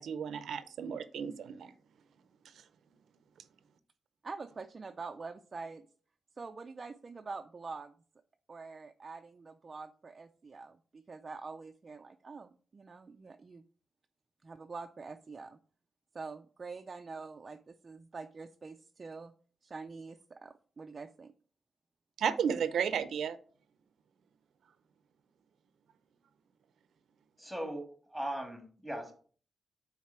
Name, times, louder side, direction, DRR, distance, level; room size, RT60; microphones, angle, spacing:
voice 1, 0.0-1.7 22.2-23.4, right 7 dB, 85° right, 12 dB, 0.5 m, -33 dB
voice 2, 4.2-5.9 6.4-7.9 8.5-13.6 14.4-15.6 16.1-19.3 19.6-21.3, right 4 dB, 30° right, 6 dB, 0.4 m, -45 dB
voice 3, 27.4-29.1, right 1 dB, ahead, 3 dB, 1.8 m, -39 dB
9.4 x 4.0 x 4.3 m, 0.44 s
wide cardioid pair, 145°, 0 cm